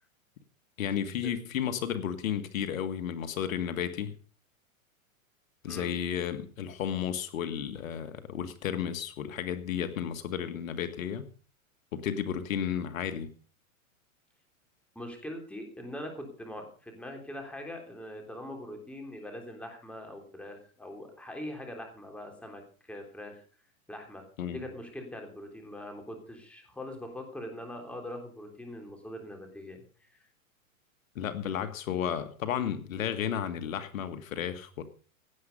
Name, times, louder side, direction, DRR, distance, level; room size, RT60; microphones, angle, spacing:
voice 1, 0.8-4.2 5.6-11.3 11.9-13.3 24.4-24.6 31.2-34.9, left 9 dB, 70° left, 10 dB, 1.9 m, -33 dB
voice 2, 15.0-22.6 22.9-23.4 23.9-24.2 24.5-30.2, left 1 dB, 5° left, 3 dB, 3.5 m, -42 dB
17.0 x 10.0 x 5.4 m, 0.41 s
hypercardioid pair, 140°, 42 cm